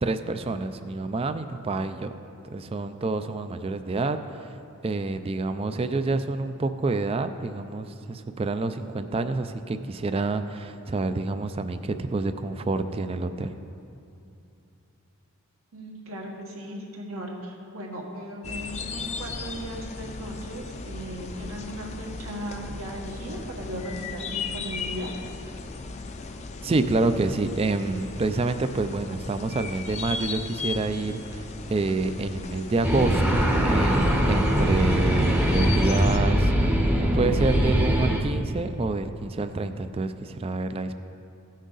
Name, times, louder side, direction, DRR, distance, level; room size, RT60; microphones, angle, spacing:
voice 1, 0.0-2.1 2.5-4.5 4.8-13.5 26.6-40.9, right 3 dB, 25° right, 9 dB, 0.3 m, -28 dB
voice 2, 15.7-25.1, equal, 75° right, -1 dB, 1.6 m, -37 dB
sound 1, 18.4-36.2, left 4 dB, 30° left, 0.5 m, -37 dB
sound 2, 32.8-38.2, equal, 10° right, 0.7 m, -22 dB
16.5 x 6.4 x 3.9 m, 2.6 s
head